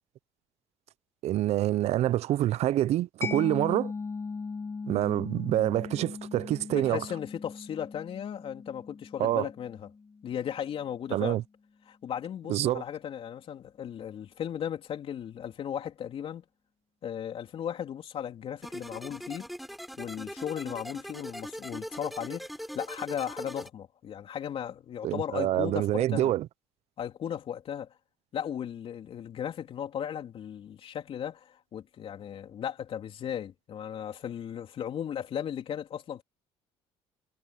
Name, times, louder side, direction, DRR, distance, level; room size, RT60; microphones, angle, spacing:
voice 1, 1.2-3.9 4.9-7.0 9.2-9.5 11.1-11.4 12.5-12.8 25.0-26.5, right 13 dB, 60° right, 0.7 m, -26 dB
Mallet percussion, 3.2-10.6, left 4 dB, 20° left, 1.0 m, -39 dB
voice 2, 6.7-9.9 10.2-11.4 11.9-16.4 17.0-19.5 20.0-22.5 22.8-26.3 27.0-27.9 28.3-36.2, left 9 dB, 50° left, 3.5 m, -36 dB
sound 1, 18.6-23.7, equal, ahead, 6.9 m, -41 dB
cardioid pair, 100°, 12 cm